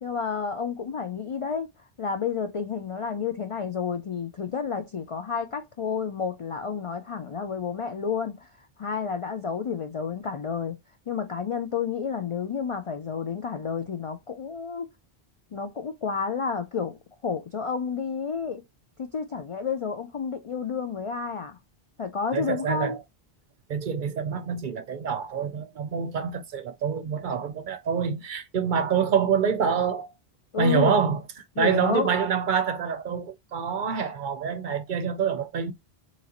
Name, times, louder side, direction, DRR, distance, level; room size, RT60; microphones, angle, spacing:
voice 1, 0.0-1.7 2.0-10.8 11.1-14.9 15.5-18.6 19.0-21.6 22.0-23.0 30.5-31.0 31.6-32.1, left 6 dB, 55° left, 0.3 m, -30 dB
voice 2, 22.3-23.0 23.7-30.1 30.6-31.2 31.6-35.7, right 6 dB, 60° right, 0.6 m, -26 dB
3.8 x 3.0 x 2.8 m
omnidirectional pair, 1.0 m